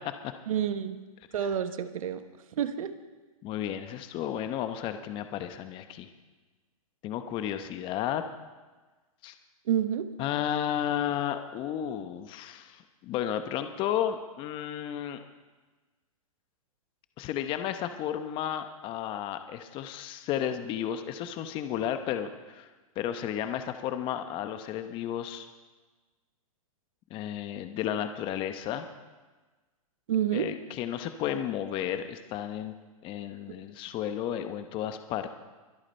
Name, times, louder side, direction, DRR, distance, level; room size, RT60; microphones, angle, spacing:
voice 1, 0.5-1.0 1.3-2.2 2.6-2.9 9.7-10.1 30.1-30.5, right 9 dB, 70° right, 10 dB, 1.1 m, -28 dB
voice 2, 3.4-6.1 7.0-8.2 9.2-9.3 10.2-15.2 17.2-22.7 23.0-25.5 27.1-28.9 30.3-32.7 33.0-35.3, left 10 dB, 25° left, 8 dB, 0.9 m, -33 dB
23.5 x 8.8 x 4.4 m, 1.3 s
hypercardioid pair, 140°, 19 cm